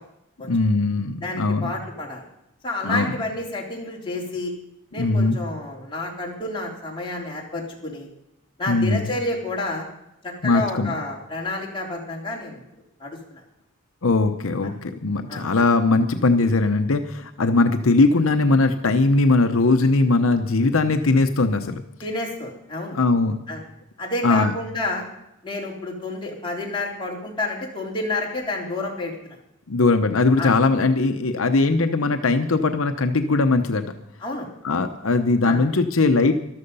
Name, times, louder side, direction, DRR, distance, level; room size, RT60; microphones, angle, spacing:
voice 1, 0.5-1.7 2.8-3.1 5.0-5.4 8.7-9.1 10.4-10.9 14.0-21.8 22.9-23.4 24.2-24.5 29.7-33.8 34.6-36.4, left 3 dB, 80° left, 7 dB, 0.8 m, -20 dB
voice 2, 1.2-2.2 2.6-4.5 4.9-8.1 8.6-9.9 10.2-12.6 13.0-13.4 15.3-15.5 22.0-23.0 23.5-23.6 24.0-25.1 25.4-29.3 30.4-30.5 34.2-34.5 35.4-35.6, left 2 dB, 25° left, -2 dB, 3.5 m, -29 dB
13.5 x 12.5 x 5.5 m, 0.83 s
head